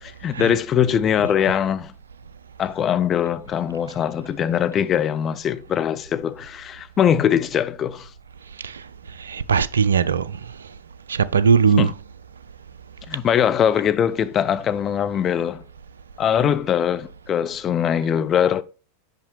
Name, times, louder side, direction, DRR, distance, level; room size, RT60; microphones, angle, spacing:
voice 1, 0.0-1.9 2.6-8.1 11.8-11.9 13.1-15.6 16.2-18.6, left 9 dB, 25° left, 0.4 m, -22 dB
voice 2, 9.2-10.4 11.1-12.0, right 6 dB, 70° right, 0.3 m, -20 dB
5.7 x 5.7 x 3.2 m
figure-of-eight pair, 90°, 0 cm